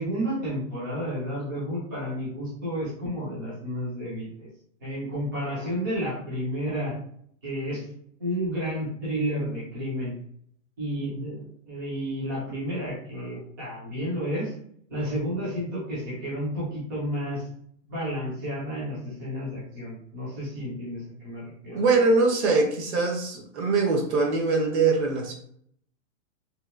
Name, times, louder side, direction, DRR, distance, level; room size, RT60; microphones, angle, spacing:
voice 1, 0.0-4.5 4.8-6.9 7.4-7.8 8.2-10.1 10.8-14.5 14.9-17.5 17.9-22.0, equal, 20° right, -9 dB, 0.4 m, -31 dB
voice 2, 21.7-25.3, right 3 dB, 60° right, 1 dB, 0.8 m, -22 dB
2.8 x 2.1 x 2.4 m, 0.64 s
hypercardioid pair, 165°, 39 cm